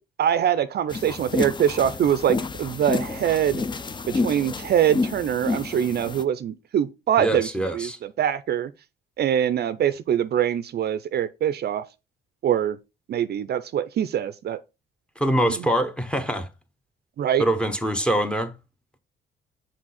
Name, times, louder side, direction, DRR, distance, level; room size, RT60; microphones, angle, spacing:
voice 1, 0.2-3.6 4.1-7.9 8.2-8.7 9.2-11.8 12.4-12.8 13.1-14.6 17.2-17.4, right 9 dB, 55° right, 0.5 m, -23 dB
sound 1, 0.9-6.2, left 3 dB, 25° left, 0.5 m, -29 dB
voice 2, 7.2-8.0 15.2-16.5 17.4-18.5, right 1 dB, 5° left, 0.8 m, -24 dB
6.2 x 4.2 x 4.1 m
cardioid pair, 90°, 20 cm